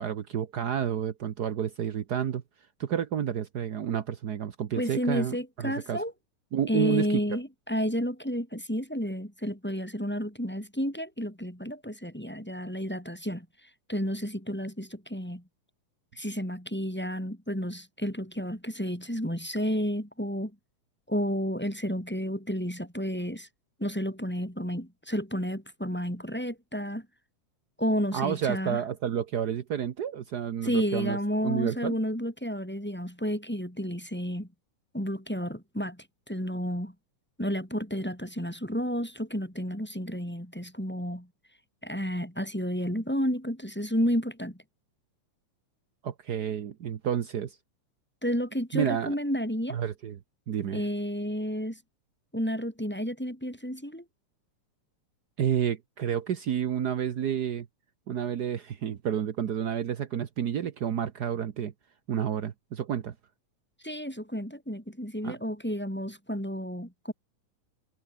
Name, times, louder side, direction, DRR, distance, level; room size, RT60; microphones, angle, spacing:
voice 1, 0.0-2.4 2.8-6.0 6.5-7.4 28.1-31.2 31.4-32.0 46.0-47.6 48.7-49.1 49.7-50.2 50.5-50.9 55.4-57.7 58.1-61.7 62.1-63.1 65.2-65.4, right 9 dB, 75° right, 0.9 m, -30 dB
voice 2, 4.8-6.1 6.7-13.5 13.9-15.4 16.2-20.5 21.1-23.5 23.8-27.1 27.8-28.8 30.6-34.5 34.9-36.9 37.4-41.3 41.8-44.6 48.2-49.8 50.7-51.8 52.3-54.0 63.8-67.1, equal, 5° left, 4.2 m, -31 dB
omnidirectional pair, 3.4 m